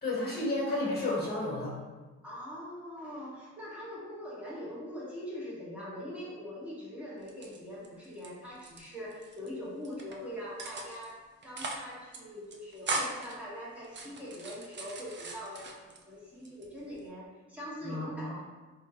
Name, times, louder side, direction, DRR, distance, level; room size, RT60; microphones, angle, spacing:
voice 1, 0.0-1.8 17.8-18.4, left 2 dB, 30° left, -6 dB, 1.4 m, -32 dB
voice 2, 2.2-18.4, equal, 5° right, -7 dB, 1.3 m, -42 dB
sound 1, 7.2-8.3 8.5-9.5 9.8-10.2 10.6-11.1 11.4-11.9 12.1-12.2 12.5-13.3 13.8-16.0 16.4-17.1, right 2 dB, 35° right, 0.5 m, -39 dB
3.5 x 2.6 x 2.8 m, 1.3 s
cardioid pair, 80°, 31 cm